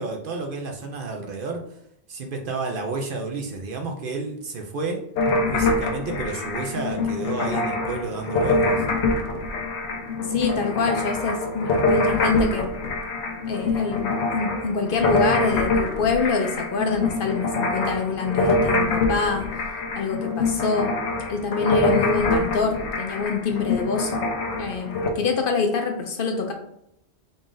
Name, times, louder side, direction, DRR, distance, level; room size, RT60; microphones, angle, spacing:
voice 1, 0.0-1.6 2.1-5.0 5.5-8.8, right 3 dB, 55° right, 2 dB, 0.8 m, -31 dB
sound 1, 5.2-25.1, left 2 dB, 85° left, 1.0 m, -25 dB
voice 2, 10.3-12.7 13.5-19.5 19.9-20.9 21.3-24.1 24.6-26.5, left 4 dB, 60° left, 4 dB, 0.7 m, -25 dB
3.9 x 2.4 x 3.7 m, 0.76 s
omnidirectional pair, 1.1 m